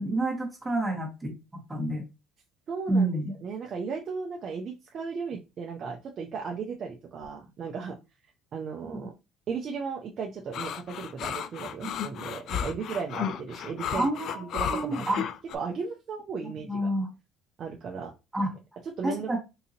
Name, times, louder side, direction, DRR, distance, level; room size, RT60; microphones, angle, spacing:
voice 1, 0.0-1.4 1.7-2.0 2.9-3.3 13.9-15.2 16.4-17.1 18.3-18.5 19.0-19.4, right 1 dB, 10° right, 0 dB, 1.2 m, -29 dB
voice 2, 2.7-8.0 8.5-9.1 9.5-14.1 14.3-15.1 15.5-16.7 17.6-18.1 18.8-19.3, right 5 dB, 45° right, 1 dB, 0.5 m, -35 dB
sound 1, 10.5-15.5, left 8 dB, 55° left, 0.3 m, -33 dB
3.8 x 2.7 x 2.8 m, 0.27 s
cardioid pair, 105°, 0 cm